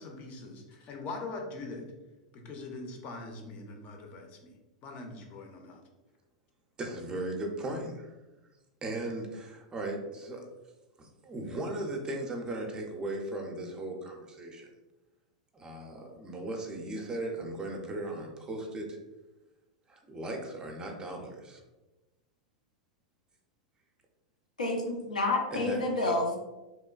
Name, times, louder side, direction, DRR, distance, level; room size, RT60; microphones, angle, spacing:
voice 1, 0.0-1.8 2.3-4.5 4.8-5.8, left 3 dB, 40° left, 2 dB, 0.5 m, -42 dB
voice 2, 6.8-8.1 8.8-10.4 11.0-14.7 15.5-19.0 19.9-21.6 25.5-25.8 26.1-26.2, right 1 dB, 20° right, 2 dB, 0.5 m, -37 dB
voice 3, 24.6-26.4, left 2 dB, 90° left, 0 dB, 0.5 m, -29 dB
2.9 x 2.1 x 2.3 m, 1.1 s
hypercardioid pair, 95°, 4 cm